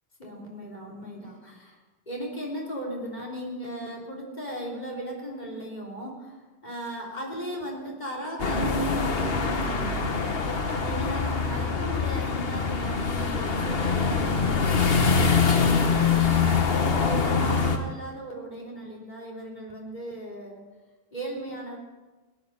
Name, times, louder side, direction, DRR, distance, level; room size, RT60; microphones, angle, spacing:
voice 1, 0.2-10.4 10.8-15.1 15.4-16.7 17.0-20.6 21.1-21.8, right 1 dB, 45° left, -2 dB, 3.5 m, -37 dB
sound 1, 8.4-17.8, left 5 dB, 65° left, 1.4 m, -24 dB
18.0 x 10.5 x 5.5 m, 1.2 s
omnidirectional pair, 1.1 m